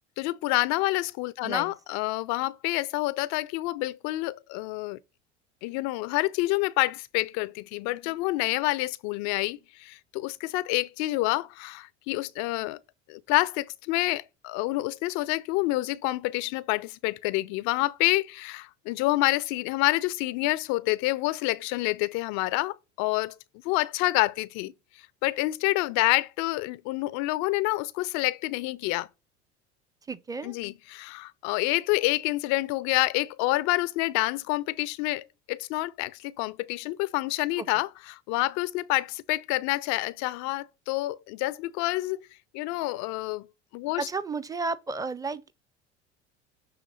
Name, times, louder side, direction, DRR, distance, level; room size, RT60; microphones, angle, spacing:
voice 1, 0.2-5.0 5.6-12.8 13.1-23.4 23.6-24.7 25.2-29.1 30.4-42.2 42.5-43.5 43.7-44.1, left 20 dB, 50° left, 0.5 m, -28 dB
voice 2, 30.1-30.6 37.6-37.7 44.0-45.5, right 4 dB, 10° right, 0.5 m, -32 dB
6.8 x 3.5 x 6.2 m
hypercardioid pair, 70°, 35 cm